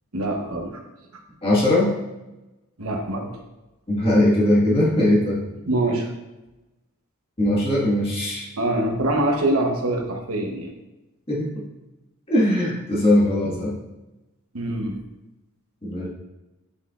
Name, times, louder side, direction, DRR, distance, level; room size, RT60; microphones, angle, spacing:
voice 1, 0.1-0.8 2.8-3.4 5.6-6.1 8.6-10.7 14.5-15.0, right 1 dB, 75° right, 2 dB, 1.0 m, -24 dB
voice 2, 1.4-1.9 3.9-5.4 7.4-8.5 11.3-11.5 12.3-13.7 15.8-16.1, left 1 dB, 25° left, -5 dB, 1.6 m, -20 dB
8.0 x 5.8 x 2.5 m, 1.0 s
head